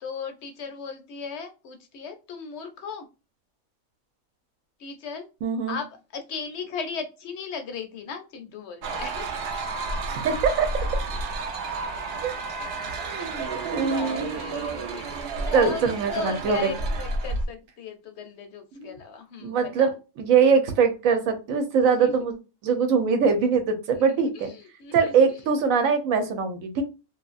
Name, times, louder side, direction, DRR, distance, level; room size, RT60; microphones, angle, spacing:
voice 1, 0.0-3.1 4.8-5.3 5.7-5.9 6.1-9.6 13.3-19.9 22.0-22.1 23.9-25.1, left 5 dB, 65° left, 7 dB, 0.8 m, -37 dB
voice 2, 5.4-5.8 10.1-10.7 12.2-12.3 12.6-14.3 15.5-16.7 18.7-18.9 19.4-22.3 22.6-24.5 24.9-26.8, right 5 dB, 90° right, 7 dB, 1.1 m, -23 dB
sound 1, 8.8-17.5, right 3 dB, 65° right, 0.7 m, -31 dB
2.7 x 2.5 x 2.4 m, 0.29 s
omnidirectional pair, 1.4 m